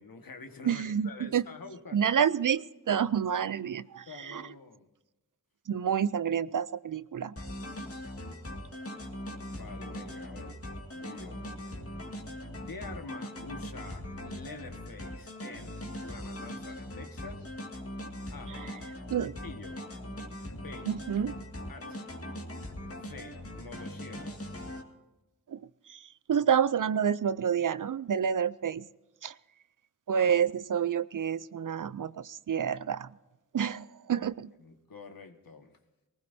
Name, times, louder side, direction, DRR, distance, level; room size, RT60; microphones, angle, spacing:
voice 1, 0.0-2.0 4.1-4.9 8.2-8.4 9.5-10.6 10.9-11.5 12.1-12.2 12.7-17.5 18.3-18.6 19.2-19.8 20.5-20.9 21.7-22.2 23.0-24.4 34.1-34.3 34.6-35.8, left 4 dB, 70° left, 6 dB, 1.6 m, -47 dB
voice 2, 0.6-1.4 1.9-4.4 5.7-7.3 18.5-18.7 19.1-19.3 20.9-21.3 25.5-25.6 25.9-28.9 29.2-29.3 30.1-33.1 33.5-34.5, right 8 dB, 55° right, 17 dB, 0.5 m, -29 dB
sound 1, 7.4-24.8, left 1 dB, 40° left, 2.2 m, -41 dB
20.0 x 19.0 x 2.7 m, 1.1 s
wide cardioid pair, 65°, 37 cm